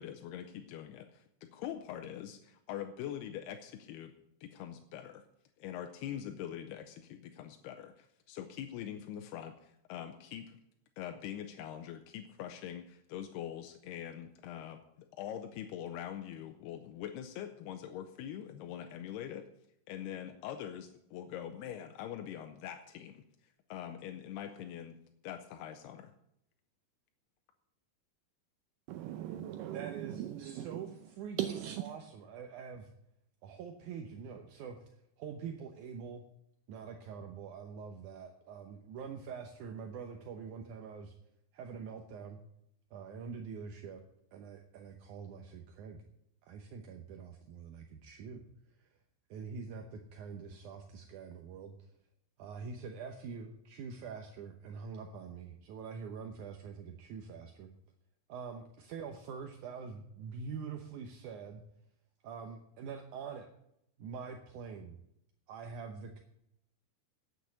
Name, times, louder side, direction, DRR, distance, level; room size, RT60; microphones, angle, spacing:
voice 1, 0.0-4.1 4.4-5.3 5.6-10.6 11.0-19.5 19.9-23.2 23.7-25.0 25.2-26.1, left 10 dB, 85° left, 2.8 m, -43 dB
voice 2, 28.9-30.8 31.4-31.8, right 12 dB, 90° right, 1.9 m, -38 dB
voice 3, 29.7-32.9 33.4-34.9 35.2-36.2 36.7-41.1 41.5-42.4 42.9-44.0 44.3-46.0 46.4-48.4 48.8-48.9 49.3-51.9 52.4-57.7 58.3-61.6 62.2-63.5 64.0-65.0 65.5-66.2, right 6 dB, 75° right, 1.9 m, -45 dB
9.1 x 8.2 x 9.4 m
omnidirectional pair, 4.6 m